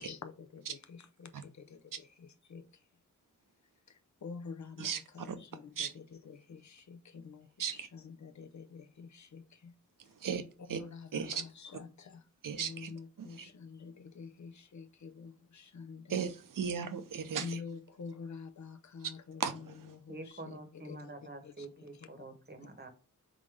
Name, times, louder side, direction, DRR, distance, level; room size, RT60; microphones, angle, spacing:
voice 1, 0.0-2.6 3.9-9.7 10.7-12.2 12.5-16.3 17.4-20.6 20.8-21.1 21.4-21.9 22.2-22.3, left 5 dB, 60° left, 0.6 m, -48 dB
voice 2, 4.8-5.4 5.8-5.9 7.6-7.9 10.2-10.4 10.7-10.8 11.1-11.4 12.4-12.9 13.2-13.5 16.1-17.6 19.4-19.7, right 7 dB, 85° right, 0.6 m, -36 dB
voice 3, 20.1-22.9, right 2 dB, 30° right, 0.9 m, -47 dB
3.9 x 3.6 x 3.2 m
wide cardioid pair, 90°, 32 cm